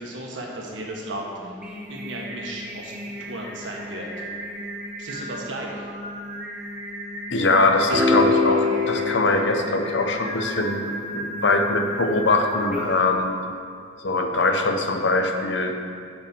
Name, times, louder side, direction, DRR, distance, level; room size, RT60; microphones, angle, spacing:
voice 1, 0.0-1.6 1.9-4.1 5.0-5.9, right 1 dB, 80° right, -2 dB, 1.5 m, -35 dB
Singing, 1.4-13.1, equal, 5° right, 1.2 m, -35 dB
voice 2, 7.3-13.3 14.0-15.8, left 2 dB, 65° left, 5 dB, 0.8 m, -22 dB
sound 1, 7.9-10.3, left 3 dB, 60° right, 2.3 m, -23 dB
7.0 x 5.6 x 7.0 m, 2.3 s
head